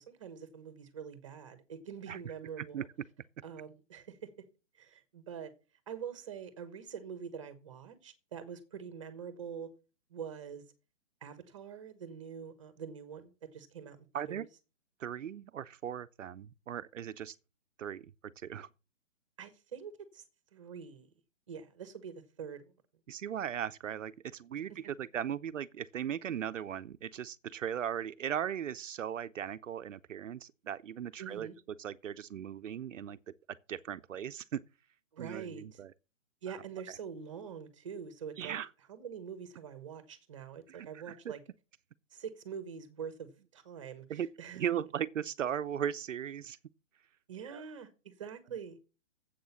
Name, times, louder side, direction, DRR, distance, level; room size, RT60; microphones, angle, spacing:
voice 1, 0.0-2.9 3.4-4.2 4.8-5.5 5.9-9.7 10.1-10.6 11.2-14.5 19.4-20.2 20.5-21.1 21.5-22.7 31.2-31.6 35.1-35.8 36.4-38.6 38.9-41.4 42.1-44.6 47.3-48.8, right 7 dB, 25° right, 1.1 m, -45 dB
voice 2, 14.1-14.5 15.0-17.4 17.8-18.1 18.4-18.7 23.1-31.5 31.8-33.2 33.7-34.6 35.2-35.9 38.4-38.7 40.7-41.3 44.1-44.3 44.5-46.6 47.4-47.6, right 9 dB, 75° right, 0.7 m, -38 dB
7.9 x 6.3 x 7.1 m
hypercardioid pair, 180°, 38 cm